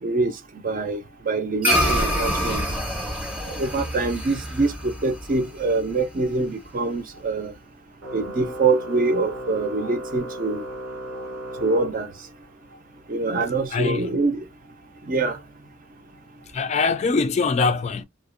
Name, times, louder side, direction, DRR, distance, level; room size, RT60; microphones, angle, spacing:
voice 1, 0.0-2.6 3.5-7.5 8.1-10.6 11.6-12.1 13.1-14.4 15.1-15.4, right 3 dB, 45° right, 0.5 m, -24 dB
sound 1, 1.6-6.3, equal, 5° right, 0.7 m, -26 dB
Organ, 8.0-12.5, right 1 dB, 85° right, 0.9 m, -36 dB
voice 2, 13.7-14.1 16.5-18.0, left 4 dB, 35° left, 0.3 m, -22 dB
2.4 x 2.0 x 2.4 m
head